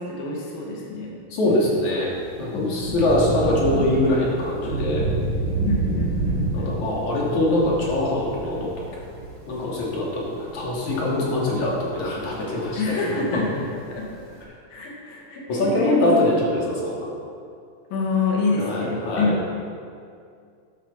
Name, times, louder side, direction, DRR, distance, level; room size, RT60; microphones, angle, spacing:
voice 1, 0.0-1.1 2.5-3.1 5.6-6.8 12.8-14.1 14.7-16.2 17.9-19.4, left 3 dB, 80° left, -2 dB, 3.8 m, -27 dB
voice 2, 1.3-2.1 2.4-5.0 6.5-8.7 9.5-13.4 15.5-17.1 18.6-19.5, left 1 dB, 60° left, -4 dB, 4.0 m, -23 dB
Thunder / Rain, 2.0-14.4, right 2 dB, 35° right, 4.7 m, -30 dB
13.0 x 11.5 x 5.7 m, 2.3 s
omnidirectional pair, 4.0 m